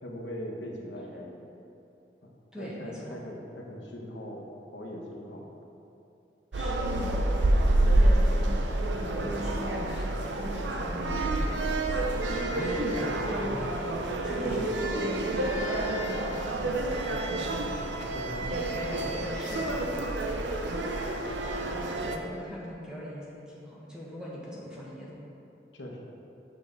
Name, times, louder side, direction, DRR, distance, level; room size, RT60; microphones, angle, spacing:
voice 1, 0.0-1.1 2.2-2.3 2.6-4.5 4.7-5.5 12.5-13.6 14.4-14.7 18.1-18.5 25.7-26.0, left 1 dB, 90° left, -1 dB, 1.0 m, -39 dB
voice 2, 2.5-3.2 6.5-7.5 7.8-12.0 12.3-13.7 14.1-17.8 18.4-20.2 20.5-20.6 21.0-25.2, equal, 5° right, -6 dB, 1.2 m, -41 dB
sound 1, 6.5-22.2, right 1 dB, 90° right, 0.6 m, -28 dB
7.0 x 6.6 x 4.0 m, 2.8 s
head